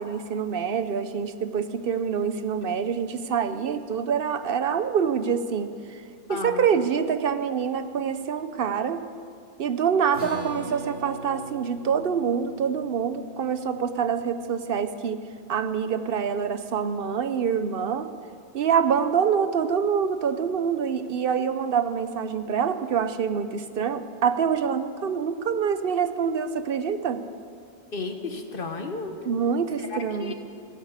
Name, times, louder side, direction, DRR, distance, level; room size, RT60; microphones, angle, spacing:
voice 1, 0.0-6.0 6.3-9.0 9.6-15.2 15.5-18.1 18.5-27.2 29.2-30.3, right 7 dB, 65° right, 10 dB, 0.8 m, -26 dB
voice 2, 6.3-6.6 27.9-29.1 29.8-30.3, left 3 dB, 60° left, 5 dB, 1.3 m, -33 dB
sound 1, 10.1-16.8, equal, 90° left, 3.4 m, -43 dB
15.5 x 8.2 x 8.2 m, 2.3 s
omnidirectional pair, 1.1 m